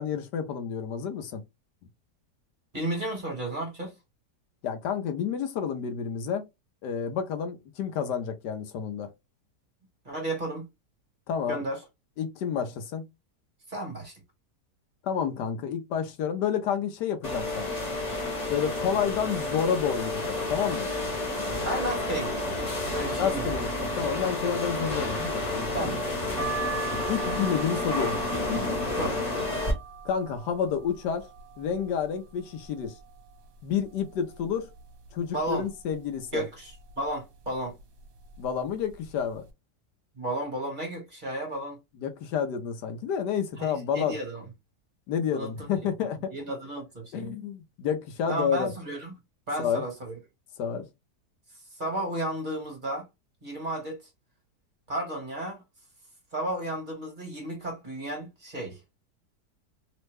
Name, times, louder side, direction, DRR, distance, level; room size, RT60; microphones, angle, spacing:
voice 1, 0.0-1.4 4.6-6.4 6.8-9.1 11.3-11.6 12.2-13.0 15.0-17.7 18.5-20.9 23.2-26.0 27.1-28.2 30.0-31.3 31.6-33.0 33.6-34.7 35.1-36.4 38.4-39.4 42.0-44.2 45.1-46.3 47.1-48.7 49.6-49.8 50.6-50.8, left 7 dB, 85° left, 1.3 m, -30 dB
voice 2, 2.7-3.9 10.0-10.7 11.5-11.8 13.7-14.1 21.6-22.5 22.9-23.5 25.7-26.0 26.3-26.7 29.0-29.2 35.3-35.7 36.3-37.8 40.2-41.8 43.6-44.4 45.3-45.5 46.3-47.4 48.3-49.1 49.5-50.1 51.8-53.1 53.4-54.0 54.9-55.6 56.3-58.8, right 1 dB, 35° right, 1.2 m, -33 dB
sound 1, 17.2-29.7, left 2 dB, 30° left, 1.0 m, -30 dB
sound 2, 26.4-32.1 32.5-33.3 33.7-33.8 33.9-35.1 35.5-35.9 36.7-37.0 37.8-38.0 38.3-38.5, right 6 dB, 60° right, 1.2 m, -40 dB
3.3 x 2.1 x 3.2 m
omnidirectional pair, 1.8 m